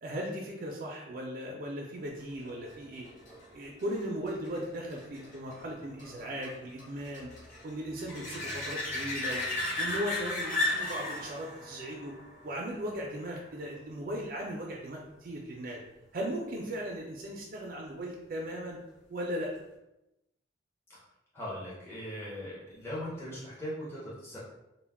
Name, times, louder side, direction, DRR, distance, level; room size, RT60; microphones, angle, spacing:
voice 1, 0.0-3.1 3.5-7.3 7.6-9.4 9.8-12.1 12.4-15.8 16.1-18.8 19.1-19.5, equal, 50° right, -2 dB, 0.3 m, -37 dB
sound 1, 2.4-13.7 19.3-19.4, left 2 dB, 45° left, 0.8 m, -37 dB
voice 2, 21.3-24.4, equal, 15° left, -8 dB, 0.6 m, -39 dB
2.2 x 2.0 x 3.3 m, 0.92 s
head